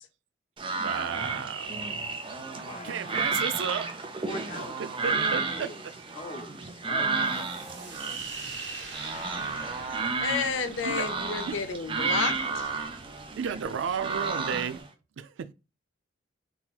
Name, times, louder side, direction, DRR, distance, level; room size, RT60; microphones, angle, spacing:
sound 1, 0.6-14.9, right 4 dB, 25° right, 0.5 m, -32 dB
voice 1, 0.8-2.0 2.8-3.9 4.8-5.9 8.3-8.5 10.8-11.1 11.5-11.6 13.4-14.8 15.2-15.5, right 7 dB, 85° right, 0.4 m, -33 dB
voice 2, 2.6-3.2 4.2-5.8 6.1-7.4, left 1 dB, 35° left, 0.6 m, -42 dB
sound 2, 7.2-14.8, right 3 dB, 65° right, 1.4 m, -46 dB
voice 3, 10.2-12.7, left 5 dB, 90° left, 0.6 m, -31 dB
3.9 x 2.8 x 2.3 m
head